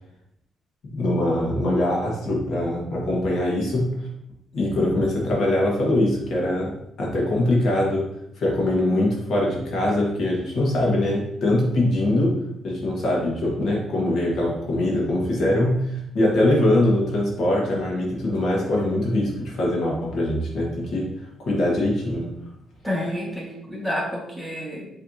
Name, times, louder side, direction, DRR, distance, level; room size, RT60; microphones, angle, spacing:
voice 1, 0.9-3.9 4.5-8.0 8.4-12.3 12.6-21.1 21.4-22.3, left 1 dB, 65° left, -3 dB, 1.5 m, -22 dB
voice 2, 22.8-24.9, left 1 dB, ahead, -4 dB, 1.5 m, -29 dB
5.9 x 3.3 x 2.7 m, 0.80 s
cardioid pair, 90°, 0 cm